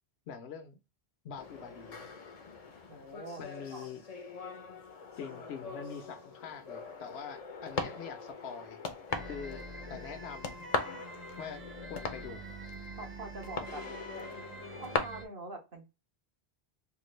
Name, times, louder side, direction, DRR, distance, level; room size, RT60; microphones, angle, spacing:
voice 1, 0.3-0.8 1.2-2.0 3.4-4.0 5.2-8.8 9.2-10.5 11.4-12.4, left 7 dB, 80° left, 0.9 m, -44 dB
sound 1, 1.4-15.0, left 5 dB, 45° left, 0.6 m, -41 dB
voice 2, 2.9-3.5 3.7-3.9 10.8-11.0 13.0-13.8 14.8-15.9, right 2 dB, 60° right, 1.2 m, -44 dB
sound 2, 9.1-15.3, right 1 dB, 20° right, 0.3 m, -46 dB
3.6 x 2.2 x 3.1 m
omnidirectional pair, 1.1 m